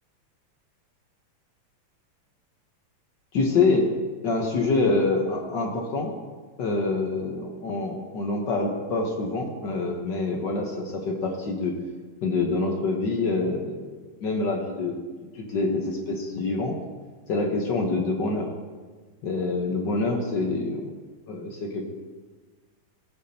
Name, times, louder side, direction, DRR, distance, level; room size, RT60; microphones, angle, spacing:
voice 1, 3.3-3.9 4.2-6.1 6.6-11.8 12.2-13.8 14.2-15.0 15.3-16.7 17.3-18.5 19.2-20.9 21.3-21.8, left 3 dB, 70° left, 1 dB, 1.0 m, -26 dB
16.5 x 8.5 x 2.8 m, 1.4 s
omnidirectional pair, 3.3 m